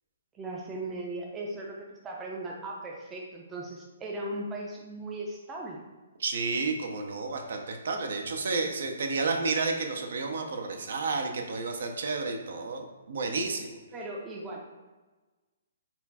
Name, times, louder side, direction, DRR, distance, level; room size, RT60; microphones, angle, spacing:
voice 1, 0.3-5.8 13.9-14.7, right 2 dB, 10° right, -2 dB, 0.5 m, -38 dB
voice 2, 6.2-13.8, right 3 dB, 65° right, 4 dB, 0.6 m, -31 dB
4.3 x 2.3 x 4.1 m, 1.2 s
hypercardioid pair, 165°, 0 cm